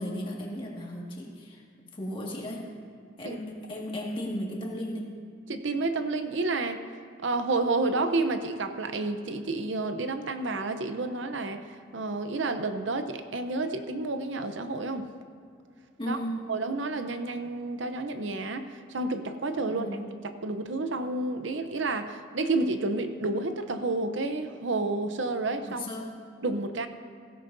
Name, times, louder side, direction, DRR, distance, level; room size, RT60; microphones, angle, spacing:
voice 1, 0.0-1.6 1.9-2.7 3.2-5.2 16.0-16.5 19.6-20.0 25.8-26.2, equal, 25° left, -3 dB, 1.9 m, -35 dB
voice 2, 5.5-6.8 7.2-15.1 16.1-16.2 16.5-19.9 20.4-25.8 26.4-26.9, right 3 dB, 80° right, 8 dB, 0.7 m, -30 dB
16.5 x 15.0 x 2.7 m, 2.3 s
head